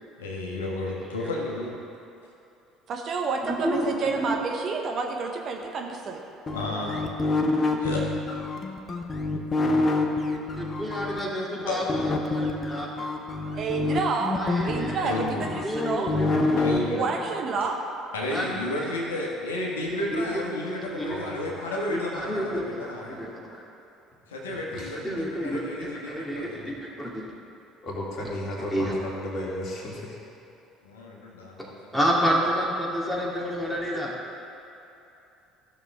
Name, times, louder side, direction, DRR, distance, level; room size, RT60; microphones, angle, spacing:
voice 1, 0.2-1.8 6.5-7.1 7.8-8.0 11.7-11.8 15.0-15.6 16.6-17.0 18.1-23.2 24.3-26.7 30.8-32.0, left 1 dB, 80° left, -3 dB, 1.4 m, -32 dB
voice 2, 2.9-6.2 13.5-16.1 16.9-17.8 33.9-34.0, right 4 dB, 45° right, 2 dB, 1.1 m, -29 dB
voice 3, 3.5-4.3 10.6-13.1 14.3-15.0 15.6-17.0 18.3-18.9 19.8-21.2 21.7-22.0 22.3-23.6 25.0-27.2 28.7-28.9 31.9-34.1, equal, ahead, -4 dB, 2.3 m, -30 dB
sound 1, 6.5-11.2 11.9-16.8, left 2 dB, 30° left, 1.0 m, -26 dB
voice 4, 21.1-21.6 24.5-24.9 27.8-30.2, left 1 dB, 45° left, -4 dB, 2.5 m, -34 dB
15.0 x 6.6 x 3.5 m, 2.9 s
figure-of-eight pair, 60°, 0 cm